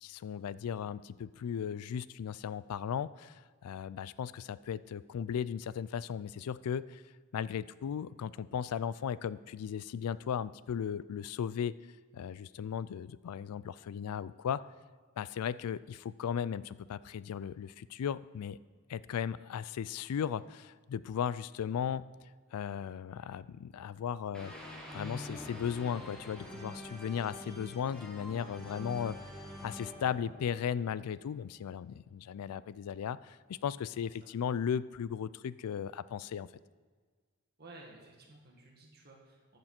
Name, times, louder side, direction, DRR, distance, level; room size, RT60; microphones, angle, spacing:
voice 1, 0.0-7.0 7.3-11.8 12.1-14.6 15.2-18.6 18.9-22.1 22.5-24.5 24.9-29.2 29.6-36.5, left 8 dB, 90° left, 17 dB, 0.3 m, -36 dB
sound 1, 24.3-31.3, left 1 dB, 5° left, 1.5 m, -46 dB
voice 2, 28.4-29.0 34.2-34.3 37.6-39.6, right 2 dB, 45° right, 0 dB, 1.9 m, -55 dB
13.5 x 6.7 x 4.4 m, 1.5 s
head